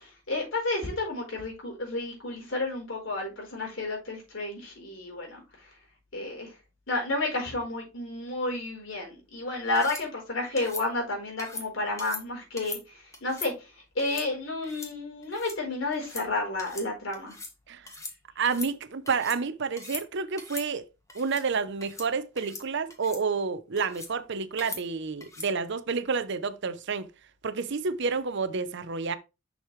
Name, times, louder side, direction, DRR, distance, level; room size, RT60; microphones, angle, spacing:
voice 1, 0.0-5.7 6.1-6.5 6.9-17.4, left 2 dB, 70° left, 4.2 m, -31 dB
sound 1, 9.8-10.0 10.6-10.9 11.4-11.7 12.0-12.2 12.6-12.8 13.1-13.5 14.0-14.3 14.6-14.9 15.2-15.6 15.9-16.3 16.6-16.9 17.1-17.5 17.9-18.2 18.4-19.4 19.7-20.0 20.4-20.7 21.1-21.4 21.8-22.1 22.4-22.6 22.9-23.2 23.8-24.1 24.6-24.8 25.2-25.5, left 3 dB, 15° left, 1.6 m, -40 dB
voice 2, 18.4-20.9 21.1-27.1 27.4-29.1, right 5 dB, 60° right, 0.7 m, -29 dB
6.5 x 6.4 x 3.2 m
head